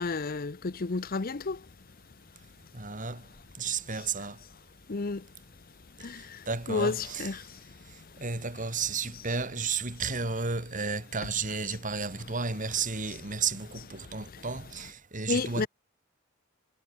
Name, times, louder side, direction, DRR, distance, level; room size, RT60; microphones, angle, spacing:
voice 1, 0.0-1.7 3.9-4.1 4.9-5.3 5.9-8.2 14.0-14.5 15.3-15.7, left 3 dB, 45° left, 0.7 m, -33 dB
voice 2, 2.7-3.2 3.6-4.4 6.5-7.3 8.2-15.7, right 5 dB, 40° right, 3.5 m, -32 dB
head